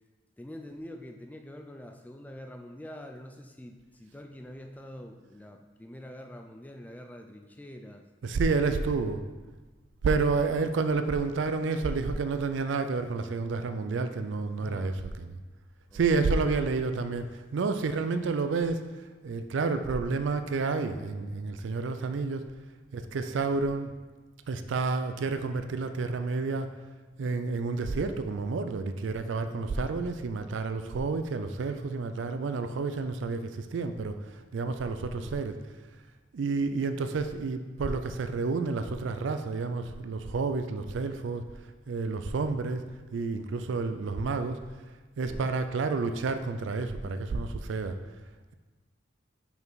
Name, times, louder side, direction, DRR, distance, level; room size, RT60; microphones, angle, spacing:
voice 1, 0.4-8.0 14.6-15.0 15.9-16.2 29.8-30.0 35.2-35.4 45.2-45.5, left 1 dB, 10° left, 5 dB, 0.3 m, -45 dB
voice 2, 8.2-9.2 10.0-15.4 15.9-18.9 19.2-22.5 22.9-23.9 24.5-26.7 27.2-35.5 36.3-41.5 41.9-42.8 43.1-44.6 45.2-48.0, right 4 dB, 70° right, 9 dB, 0.4 m, -30 dB
5.4 x 4.6 x 4.0 m, 1.3 s
head